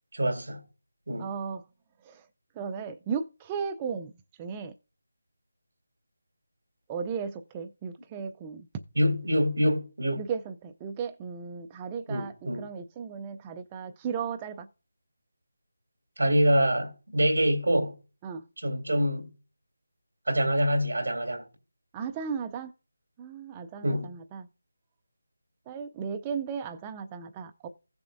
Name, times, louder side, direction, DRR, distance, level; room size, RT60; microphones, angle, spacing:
voice 1, 0.1-0.6 1.1-1.3 8.9-10.2 12.1-12.7 16.2-18.0 18.6-19.3 20.3-21.4 23.8-24.1, equal, 65° right, 2.8 m, -25 dB
voice 2, 1.2-1.6 2.0-2.3 2.6-4.1 4.4-4.7 6.9-8.7 10.2-14.7 18.2-18.4 21.9-22.7 23.2-24.5 25.7-27.7, right 6 dB, 10° right, 0.3 m, -35 dB
16.0 x 6.8 x 2.6 m
figure-of-eight pair, 175°, 0 cm